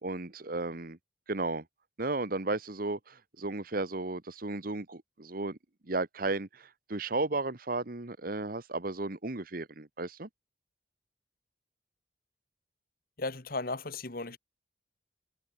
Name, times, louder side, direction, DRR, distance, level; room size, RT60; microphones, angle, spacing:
voice 1, 0.0-1.0 1.3-1.6 2.0-5.6 5.9-10.3, right 2 dB, 50° right, 1.3 m, -34 dB
voice 2, 13.2-14.4, left 3 dB, 50° left, 1.8 m, -35 dB
head